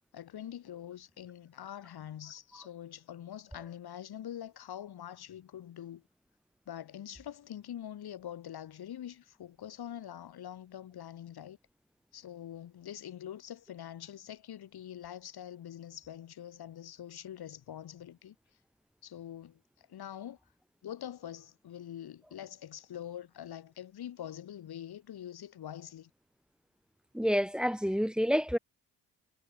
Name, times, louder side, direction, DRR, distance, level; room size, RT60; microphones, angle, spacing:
voice 1, 0.1-6.0 6.7-11.6 12.1-18.3 19.0-20.4 20.8-26.1, left 10 dB, 50° left, 6.3 m, -44 dB
voice 2, 27.1-28.6, equal, ahead, 1.6 m, -28 dB
hypercardioid pair, 55°, 48 cm